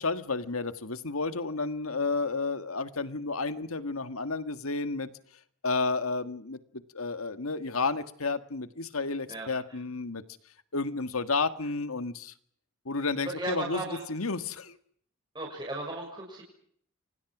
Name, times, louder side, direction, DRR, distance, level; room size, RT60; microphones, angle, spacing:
voice 1, 0.0-5.1 5.6-10.2 10.7-12.3 12.9-13.8 14.1-14.8, left 3 dB, 85° left, 11 dB, 1.8 m, -31 dB
voice 2, 9.3-9.8 13.2-14.0 15.3-16.4, right 2 dB, 20° right, -1 dB, 6.3 m, -36 dB
29.0 x 25.0 x 6.1 m, 0.64 s
head